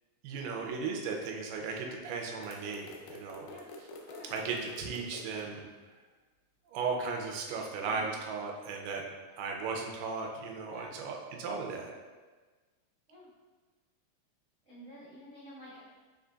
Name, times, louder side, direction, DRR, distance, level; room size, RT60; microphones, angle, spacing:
voice 1, 0.2-3.5 4.3-5.6 6.7-9.0 9.4-11.9, right 4 dB, 90° right, 1 dB, 2.2 m, -36 dB
sound 1, 2.4-5.4, left 2 dB, 80° left, 2.0 m, -48 dB
voice 2, 14.6-15.8, equal, 50° right, -11 dB, 0.8 m, -50 dB
5.3 x 3.7 x 2.3 m, 1.4 s
omnidirectional pair, 3.8 m